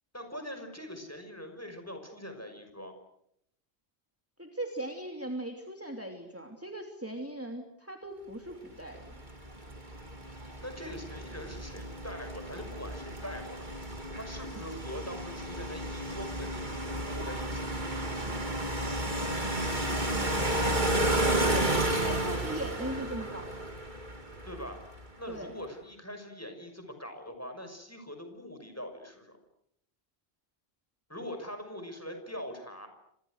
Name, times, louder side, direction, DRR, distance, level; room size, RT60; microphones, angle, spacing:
voice 1, 0.1-2.9 10.6-13.8 14.2-17.9 24.5-24.8 25.2-29.4 31.1-32.9, equal, 15° left, 6 dB, 6.0 m, -43 dB
voice 2, 4.4-9.1 21.4-23.7 25.3-25.5, right 1 dB, 15° right, 3 dB, 2.9 m, -39 dB
sound 1, 8.9-25.1, right 1 dB, 45° right, 3.4 m, -32 dB
29.5 x 26.5 x 6.5 m, 0.75 s
omnidirectional pair, 1.1 m